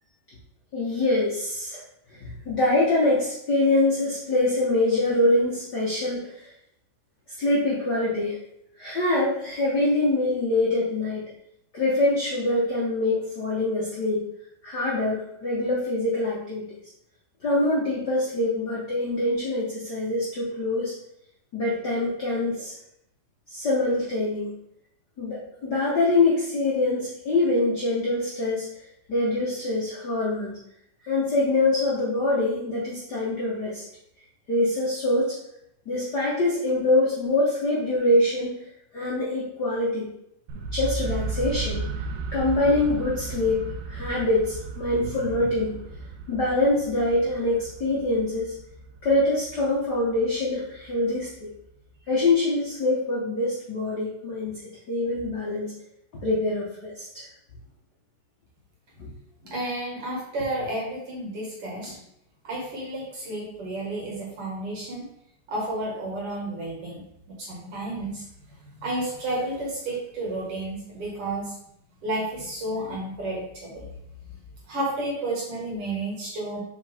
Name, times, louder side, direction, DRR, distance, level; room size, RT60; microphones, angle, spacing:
voice 1, 0.7-1.8 2.1-6.5 7.4-8.4 8.8-11.3 11.7-14.3 14.6-16.8 17.4-20.9 21.5-22.7 23.5-24.6 25.2-28.7 29.1-30.6 31.1-33.8 34.5-35.4 35.8-38.5 38.9-40.1 40.7-41.8 42.3-45.8 46.3-48.5 49.0-51.5 52.1-54.6 54.9-55.7 56.2-57.3 59.0-59.1 59.4-59.5, left 2 dB, 65° left, -6 dB, 1.0 m, -24 dB
sound 1, 40.5-52.3, right 3 dB, 90° right, 2.3 m, -35 dB
voice 2, 59.5-62.0 62.4-65.0 65.5-68.2 68.8-71.5 72.0-73.9 74.7-76.6, right 1 dB, 50° right, -3 dB, 2.3 m, -31 dB
6.4 x 4.9 x 3.5 m, 0.76 s
omnidirectional pair, 3.8 m